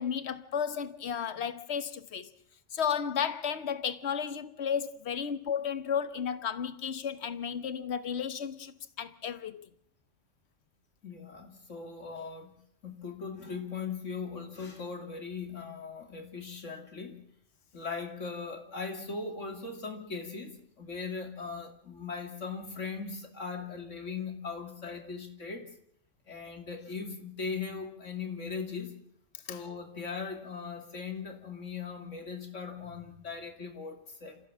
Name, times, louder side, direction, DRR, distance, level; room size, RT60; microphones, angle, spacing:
voice 1, 0.0-2.3 2.7-9.7 29.5-29.6, left 7 dB, 60° left, 1.3 m, -33 dB
voice 2, 11.0-17.3 17.7-25.7 26.3-28.9 29.5-34.4, left 5 dB, 80° left, 3.1 m, -39 dB
28.0 x 15.0 x 7.4 m
omnidirectional pair, 1.3 m